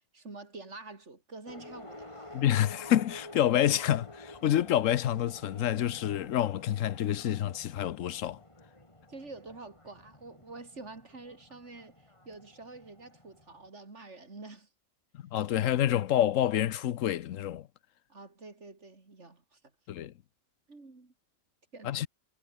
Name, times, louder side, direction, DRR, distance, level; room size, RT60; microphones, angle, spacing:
voice 1, 0.1-2.3 9.1-14.7 18.1-19.6 20.7-21.1 21.7-22.0, right 3 dB, 65° right, 3.6 m, -47 dB
sound 1, 1.4-13.7, left 1 dB, 25° left, 3.1 m, -50 dB
voice 2, 2.3-8.4 15.1-17.7 19.9-20.1 21.8-22.1, left 11 dB, 85° left, 1.1 m, -28 dB
omnidirectional pair, 1.3 m